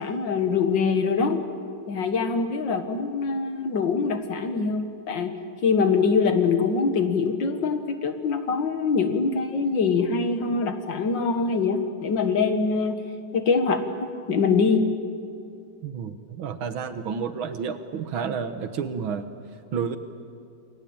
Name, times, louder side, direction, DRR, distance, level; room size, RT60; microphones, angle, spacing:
voice 1, 0.0-1.4 1.9-5.3 5.6-13.0 13.3-14.8, left 5 dB, 65° left, 7 dB, 2.3 m, -24 dB
voice 2, 15.8-19.3 19.7-20.0, right 6 dB, 85° right, 10 dB, 2.2 m, -30 dB
28.5 x 22.0 x 8.9 m, 2.4 s
omnidirectional pair, 2.1 m